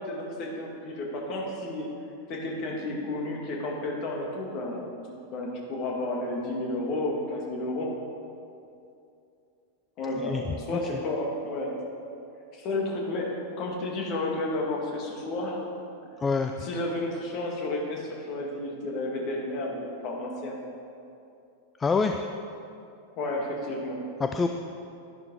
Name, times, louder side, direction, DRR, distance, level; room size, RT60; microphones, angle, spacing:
voice 1, 0.0-1.9 2.3-7.9 10.0-11.8 12.5-15.6 16.6-20.5 23.2-24.1, left 2 dB, 40° left, -1 dB, 2.3 m, -32 dB
voice 2, 16.2-16.5 21.8-22.2 24.2-24.5, left 4 dB, 15° left, 6 dB, 0.5 m, -25 dB
11.5 x 11.0 x 4.8 m, 2.6 s
figure-of-eight pair, 90°, 0 cm